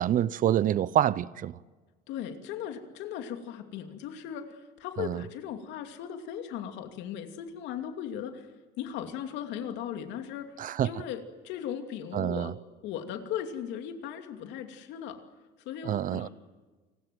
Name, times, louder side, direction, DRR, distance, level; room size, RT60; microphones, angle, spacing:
voice 1, 0.0-1.6 5.0-5.2 10.6-11.1 12.1-12.5 15.8-16.3, right 11 dB, 45° right, 0.7 m, -27 dB
voice 2, 2.1-8.5 8.8-12.5 12.8-15.2 15.6-16.3, left 9 dB, 75° left, 2.7 m, -37 dB
29.0 x 20.0 x 7.8 m
cardioid pair, 110°, 19 cm